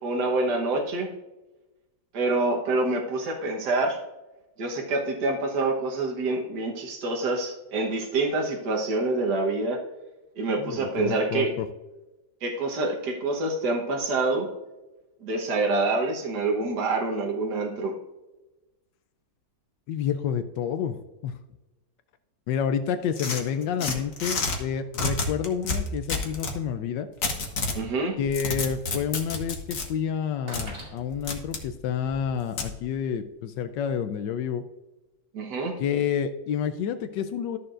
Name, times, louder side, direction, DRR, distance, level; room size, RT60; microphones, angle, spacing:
voice 1, 0.0-1.1 2.1-4.0 4.6-9.8 10.4-11.5 12.4-14.5 15.2-17.9 27.7-28.2 35.3-35.7, right 2 dB, 70° right, 0 dB, 1.8 m, -26 dB
voice 2, 10.6-11.7 19.9-21.0 21.2-21.4 22.5-27.1 28.2-34.6 35.8-37.6, left 8 dB, 85° left, 9 dB, 1.3 m, -29 dB
sound 1, 23.2-24.6 24.9-26.6 27.2-27.8 28.2-29.9 30.5-30.7 31.3-31.6 32.6-32.7, left 3 dB, 50° left, 1.5 m, -29 dB
sound 2, 27.1-27.2 28.1-28.2 28.4-28.5 29.5-29.6 30.0-32.3, right 1 dB, 50° right, 2.8 m, -44 dB
13.5 x 6.8 x 2.5 m, 1.1 s
omnidirectional pair, 1.9 m